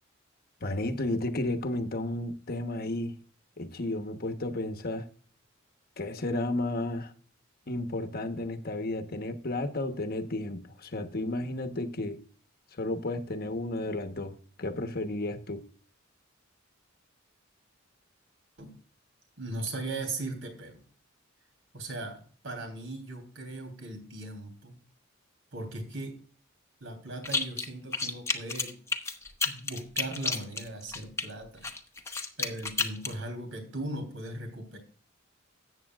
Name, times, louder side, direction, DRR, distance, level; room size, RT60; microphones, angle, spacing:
voice 1, 0.6-3.1 3.6-5.1 6.0-7.1 7.7-12.2 12.8-15.6, left 2 dB, 50° left, 1.1 m, -32 dB
voice 2, 19.4-20.8 21.7-24.8 25.5-26.2 26.8-28.8 29.1-29.2 29.4-31.7 32.4-34.8, right 2 dB, 65° right, 3.1 m, -38 dB
sound 1, 27.2-27.7 27.9-31.2 31.6-33.1, left 4 dB, 15° left, 0.9 m, -31 dB
13.5 x 8.6 x 2.4 m
head